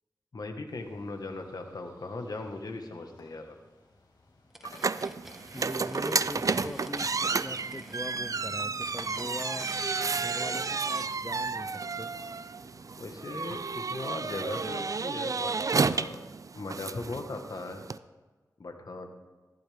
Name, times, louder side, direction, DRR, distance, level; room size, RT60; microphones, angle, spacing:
voice 1, 0.3-3.6 13.0-15.5 15.8-16.2 16.5-17.8 18.6-19.1, left 2 dB, 65° left, 5 dB, 1.6 m, -38 dB
sound 1, 0.7-13.1, left 2 dB, 90° left, 2.3 m, -60 dB
sound 2, 4.5-11.1, equal, 5° right, 1.4 m, -51 dB
sound 3, 4.6-18.0, right 4 dB, 50° right, 0.4 m, -32 dB
voice 2, 5.5-9.7 10.1-12.1, left 1 dB, 15° left, 12 dB, 0.4 m, -41 dB
15.0 x 11.5 x 3.6 m, 1.3 s
cardioid pair, 55°, 7 cm